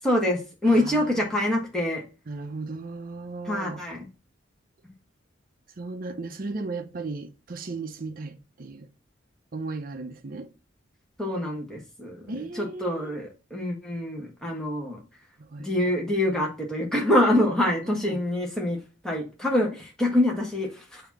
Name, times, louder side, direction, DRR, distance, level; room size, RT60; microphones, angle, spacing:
voice 1, 0.0-2.0 3.5-4.1 11.2-12.2 12.5-15.0 15.6-18.8 19.0-21.0, left 1 dB, 5° left, 1.3 m, -25 dB
voice 2, 0.6-1.4 2.3-3.8 5.8-8.9 9.5-10.5 12.3-13.2 15.4-15.7 17.8-18.2, right 3 dB, 45° right, 0.6 m, -36 dB
7.0 x 2.8 x 5.8 m
head